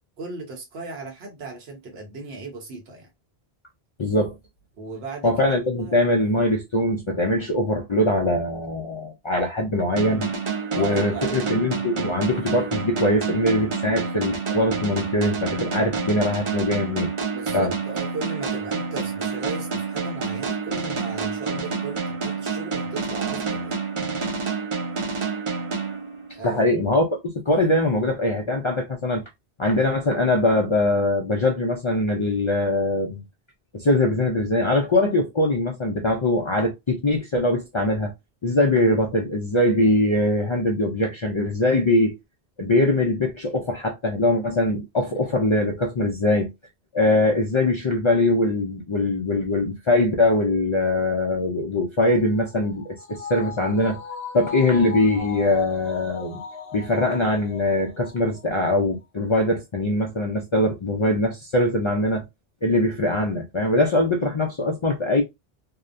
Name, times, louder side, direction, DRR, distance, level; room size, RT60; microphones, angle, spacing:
voice 1, 0.2-3.1 4.8-5.3 5.8-6.1 10.7-11.5 17.3-23.7 26.3-26.6, right 3 dB, 80° right, 1.1 m, -36 dB
voice 2, 4.0-4.4 5.2-10.3 10.7-17.1 17.5-17.7 26.4-29.2 29.6-33.2 33.7-38.1 38.4-42.2 42.6-46.5 46.9-54.0 54.3-56.4 56.7-62.2 62.6-65.2, left 1 dB, 55° left, 0.3 m, -22 dB
sound 1, 10.0-26.6, right 5 dB, 45° right, 0.4 m, -28 dB
sound 2, 52.0-58.7 59.0-59.1, left 7 dB, 70° left, 0.8 m, -38 dB
2.8 x 2.1 x 2.4 m
omnidirectional pair, 1.0 m